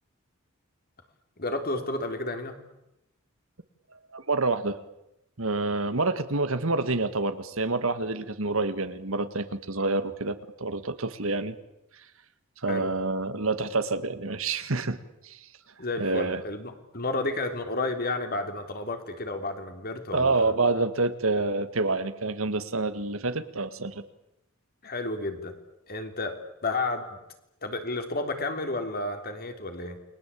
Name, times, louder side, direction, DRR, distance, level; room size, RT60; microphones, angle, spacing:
voice 1, 1.4-2.5 12.7-12.9 15.8-20.5 24.8-25.5 25.9-26.4 26.6-27.2 27.6-30.0, left 2 dB, 45° left, 6 dB, 3.6 m, -31 dB
voice 2, 4.1-4.8 5.4-11.6 12.6-15.0 15.2-15.4 16.0-16.4 20.1-24.0, right 3 dB, 75° right, 11 dB, 1.8 m, -27 dB
29.5 x 22.0 x 8.6 m, 0.89 s
head